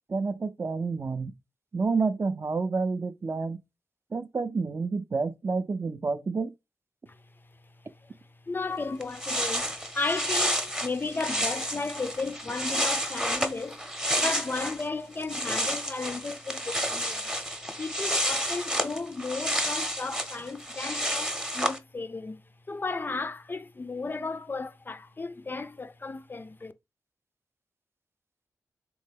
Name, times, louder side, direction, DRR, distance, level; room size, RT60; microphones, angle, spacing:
voice 1, 0.1-1.3 1.7-3.6 4.1-6.5, right 4 dB, 40° right, 0.4 m, -29 dB
voice 2, 8.5-13.9 14.2-17.3 17.8-26.7, left 3 dB, 30° left, 0.3 m, -34 dB
sound 1, 8.7-8.8 9.0-14.9 15.1-21.8, equal, 10° right, 0.7 m, -30 dB
3.3 x 2.1 x 3.4 m
supercardioid pair, 40°, 6 cm